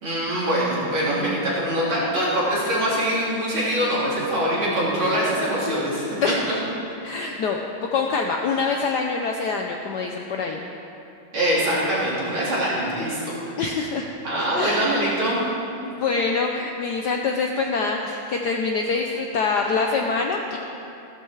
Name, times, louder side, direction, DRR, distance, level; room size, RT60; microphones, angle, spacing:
voice 1, 0.0-6.1 11.3-13.4 14.2-15.4, equal, 75° right, -8 dB, 4.5 m, -23 dB
voice 2, 6.2-6.5 7.0-7.6 7.9-10.6 13.6-14.1 14.4-14.8 15.9-20.6, left 4 dB, 65° left, 2 dB, 1.2 m, -25 dB
15.5 x 13.0 x 4.7 m, 2.8 s
omnidirectional pair, 2.3 m